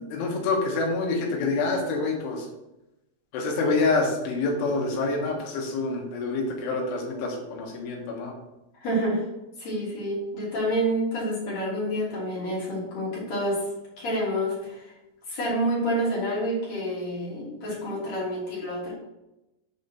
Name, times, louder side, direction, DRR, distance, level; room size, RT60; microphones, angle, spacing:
voice 1, 0.1-2.5 3.3-8.3, left 3 dB, 75° left, 0 dB, 3.6 m, -27 dB
voice 2, 8.8-9.2 9.6-13.6 14.0-14.9 15.3-18.9, equal, 40° left, -8 dB, 3.5 m, -28 dB
7.8 x 5.2 x 4.1 m, 0.94 s
omnidirectional pair, 6.0 m